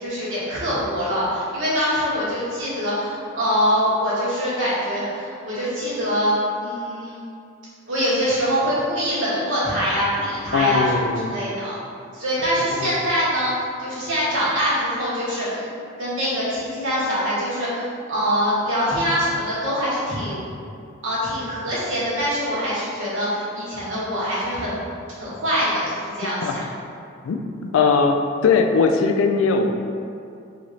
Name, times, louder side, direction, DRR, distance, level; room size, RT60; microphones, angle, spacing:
voice 1, 0.0-7.2 7.9-10.9 11.3-11.8 12.1-13.5 13.8-15.7 16.0-20.4 21.0-24.7 25.1-26.6, equal, 70° right, -9 dB, 1.3 m, -24 dB
voice 2, 10.5-11.3 12.7-12.9 26.4-26.5 27.2-27.4 27.7-28.2 28.4-29.7, left 5 dB, 80° left, 6 dB, 0.3 m, -19 dB
3.2 x 2.8 x 3.9 m, 2.4 s
head